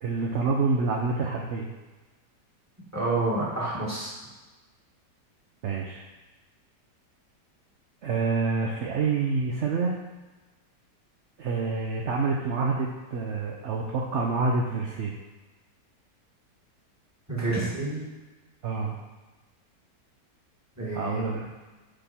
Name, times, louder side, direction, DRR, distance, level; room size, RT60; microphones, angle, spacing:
voice 1, 0.0-1.7 5.6-6.1 8.0-10.0 11.4-15.2 18.6-18.9 20.9-21.5, right 4 dB, 60° right, -1 dB, 0.7 m, -27 dB
voice 2, 2.9-4.1 17.3-18.0 20.8-21.4, right 2 dB, 10° right, -7 dB, 1.8 m, -29 dB
7.9 x 4.4 x 4.3 m, 1.2 s
omnidirectional pair, 1.8 m